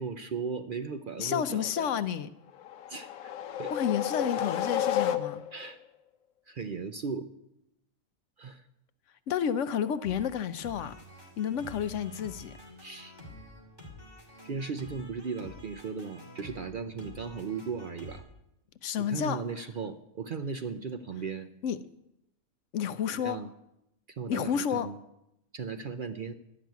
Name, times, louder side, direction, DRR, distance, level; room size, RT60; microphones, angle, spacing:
voice 1, 0.0-2.0 2.9-3.3 3.6-3.7 5.5-5.8 6.5-7.3 8.4-8.6 12.8-13.1 14.4-18.2 19.0-21.5 23.1-23.5 24.1-25.0 25.5-26.3, right 5 dB, 55° right, 7 dB, 0.6 m, -37 dB
voice 2, 1.2-2.3 3.7-5.4 9.3-10.9 11.4-12.6 18.8-19.4 21.6-21.8 22.7-23.4 24.3-24.9, left 8 dB, 70° left, 13 dB, 0.9 m, -30 dB
sound 1, 2.6-5.7, left 10 dB, 90° left, 1.1 m, -31 dB
sound 2, 10.0-18.2, equal, 15° right, 2.7 m, -48 dB
12.0 x 5.9 x 9.2 m, 0.84 s
omnidirectional pair, 1.4 m